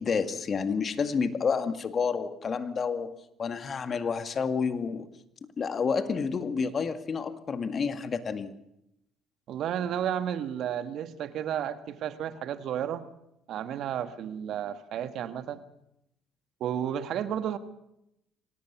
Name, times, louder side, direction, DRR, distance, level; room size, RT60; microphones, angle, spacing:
voice 1, 0.0-5.1 5.6-8.6, left 5 dB, 45° left, 9 dB, 1.9 m, -29 dB
voice 2, 9.5-13.1 13.5-15.6 16.6-17.6, right 9 dB, 60° right, 10 dB, 1.5 m, -32 dB
24.5 x 18.0 x 5.9 m, 0.81 s
hypercardioid pair, 60°, 0 cm